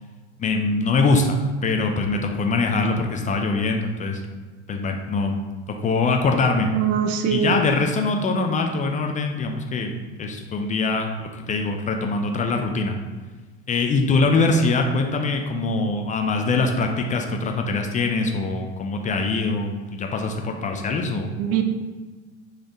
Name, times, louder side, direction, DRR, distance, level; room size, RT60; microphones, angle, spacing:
voice 1, 0.4-1.4 1.6-4.2 4.7-5.4 5.8-6.7 7.3-9.9 10.2-12.9 13.7-21.3, left 3 dB, 20° left, 3 dB, 0.5 m, -23 dB
voice 2, 6.7-7.5 21.4-21.6, right 9 dB, 45° right, 6 dB, 0.6 m, -22 dB
4.0 x 3.3 x 3.7 m, 1.4 s
hypercardioid pair, 80°, 34 cm